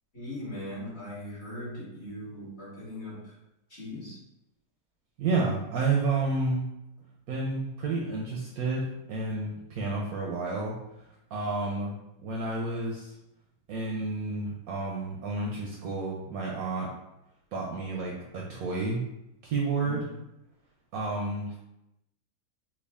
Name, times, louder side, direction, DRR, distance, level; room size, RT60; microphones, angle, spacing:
voice 1, 0.1-3.4 3.7-4.2 19.8-20.1, left 1 dB, 40° left, -7 dB, 1.3 m, -39 dB
voice 2, 5.2-6.7 7.3-10.8 11.3-13.1 13.7-16.9 17.5-19.0 19.4-20.0 20.9-21.6, right 3 dB, 70° right, -2 dB, 0.9 m, -30 dB
3.5 x 2.3 x 3.4 m, 0.88 s
omnidirectional pair, 1.9 m